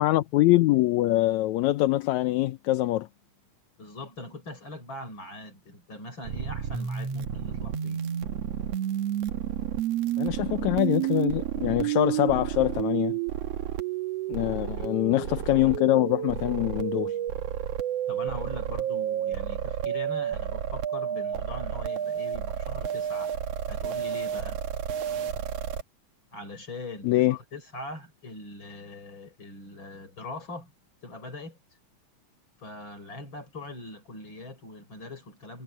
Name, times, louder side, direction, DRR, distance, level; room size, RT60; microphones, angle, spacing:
voice 1, 0.0-3.1 10.2-13.2 14.3-17.2 27.0-27.4, left 16 dB, 75° left, 2.0 m, -24 dB
voice 2, 3.8-8.0 14.8-15.2 18.1-23.4 23.7-24.6 26.3-30.7 31.0-31.6 32.6-35.6, left 2 dB, 40° left, 6.6 m, -41 dB
sound 1, 6.2-25.8, right 10 dB, 60° right, 2.1 m, -31 dB
omnidirectional pair, 3.5 m